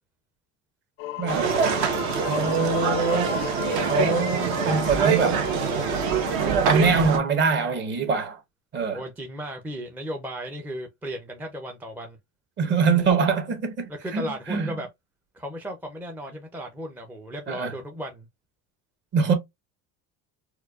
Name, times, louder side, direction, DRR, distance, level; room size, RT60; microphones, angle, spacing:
sound 1, 1.0-6.5, left 15 dB, 80° left, 0.5 m, -34 dB
voice 1, 1.2-1.6 2.3-3.5 3.8-5.5 6.4-8.4 8.7-9.0 12.6-14.7 17.5-17.7 19.1-19.3, right 5 dB, 35° right, 1.0 m, -24 dB
sound 2, 1.3-7.2, right 6 dB, 65° right, 1.0 m, -25 dB
voice 2, 8.8-12.2 14.0-14.9 15.3-18.3, equal, 5° right, 0.4 m, -35 dB
4.4 x 2.3 x 2.3 m
cardioid pair, 150°, 31 cm